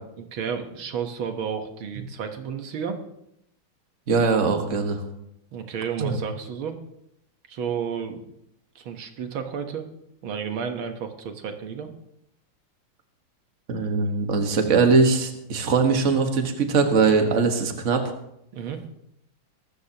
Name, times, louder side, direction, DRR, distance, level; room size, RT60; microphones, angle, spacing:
voice 1, 0.2-3.0 5.5-6.8 7.5-8.2 8.8-9.8 10.2-11.9 18.5-18.8, right 7 dB, 80° right, 6 dB, 2.0 m, -32 dB
voice 2, 4.1-5.0 6.0-6.2 13.7-18.1, right 4 dB, 40° right, 5 dB, 1.7 m, -21 dB
22.5 x 13.0 x 2.9 m, 0.79 s
omnidirectional pair, 2.2 m